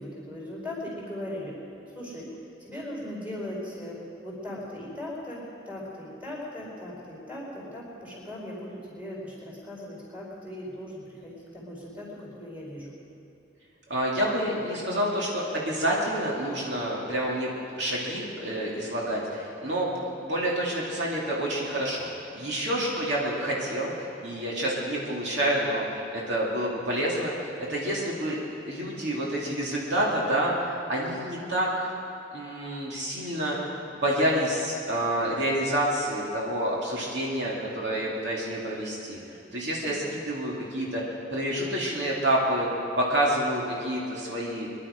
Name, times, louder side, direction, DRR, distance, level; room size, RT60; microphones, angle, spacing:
voice 1, 0.0-1.6 1.9-2.3 2.6-12.9 22.7-22.9 39.8-40.1, left 1 dB, 10° right, -5 dB, 4.5 m, -38 dB
voice 2, 13.9-17.5 17.8-28.4 28.6-31.9 32.3-39.2 39.5-44.7, right 1 dB, 65° right, -4 dB, 2.4 m, -28 dB
23.5 x 11.0 x 5.1 m, 2.7 s
head